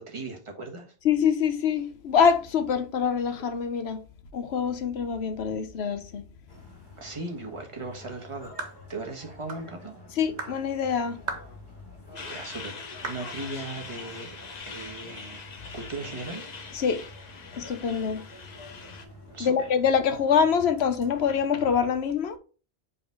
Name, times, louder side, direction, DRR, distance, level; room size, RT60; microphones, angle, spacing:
voice 1, 0.0-0.9 7.0-8.5 8.9-9.9 12.2-14.4 14.6-15.4 15.7-16.5 19.3-19.7, right 2 dB, 30° right, 1.3 m, -38 dB
voice 2, 1.0-4.0 4.3-6.2 10.2-11.2 16.7-17.0 17.5-18.2 19.4-22.4, left 7 dB, 75° left, 1.0 m, -25 dB
sound 1, 6.5-21.5, left 1 dB, 20° left, 1.9 m, -48 dB
sound 2, 8.6-8.8 9.5-9.7 10.4-10.6 11.3-11.5 12.2-12.3 13.0-13.3, right 4 dB, 90° right, 1.3 m, -35 dB
Truck, 12.2-19.1, left 5 dB, 45° left, 0.8 m, -42 dB
5.1 x 4.0 x 4.7 m
omnidirectional pair, 1.1 m